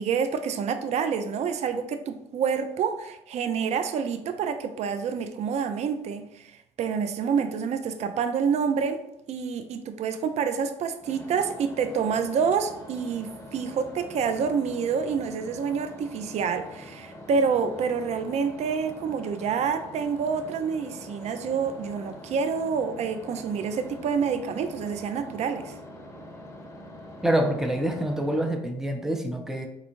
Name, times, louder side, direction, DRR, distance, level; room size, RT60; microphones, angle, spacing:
voice 1, 0.0-9.0 9.3-25.7, right 6 dB, 50° right, 9 dB, 0.4 m, -28 dB
sound 1, 11.0-28.5, left 1 dB, 20° left, 0.9 m, -44 dB
voice 2, 27.2-29.7, right 1 dB, 5° right, 4 dB, 0.6 m, -26 dB
4.2 x 2.6 x 2.9 m, 0.81 s
hypercardioid pair, 60°, 15 cm